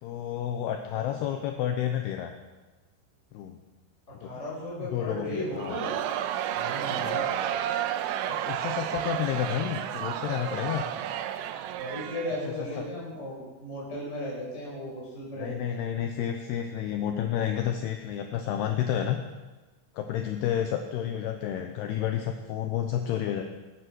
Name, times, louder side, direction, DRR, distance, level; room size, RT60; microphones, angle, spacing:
voice 1, 0.0-2.3 3.3-3.6 4.2-4.3 4.9-5.8 7.0-7.3 8.3-10.8 12.8-12.9 15.4-19.2 20.0-23.4, left 10 dB, 75° left, 5 dB, 2.5 m, -30 dB
voice 2, 4.2-6.0 6.5-7.4 11.8-15.8, left 1 dB, 15° left, -5 dB, 5.1 m, -36 dB
Crowd, 5.6-12.8, right 11 dB, 80° right, 3.0 m, -31 dB
22.5 x 9.9 x 6.3 m, 1.2 s
omnidirectional pair, 5.5 m